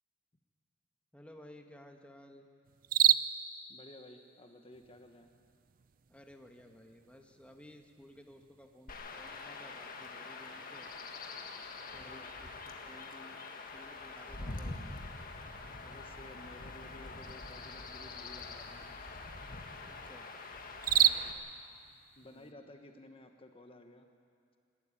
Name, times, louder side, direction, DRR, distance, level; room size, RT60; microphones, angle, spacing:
voice 1, 1.1-2.5 6.1-10.9 11.9-12.5 12.9-15.0 19.9-20.3 22.2-22.7, left 1 dB, 5° left, 3 dB, 1.2 m, -56 dB
sound 1, 2.6-22.5, right 11 dB, 45° right, 0.5 m, -37 dB
voice 2, 3.7-5.3 12.0-12.3 12.6-12.7 15.8-18.9 20.9-21.5 22.2-24.1, left 1 dB, 30° left, 5 dB, 1.2 m, -54 dB
Chirp tweet / Wind / Stream, 8.9-21.3, left 3 dB, 50° left, 1.7 m, -45 dB
27.0 x 12.5 x 9.9 m, 2.4 s
head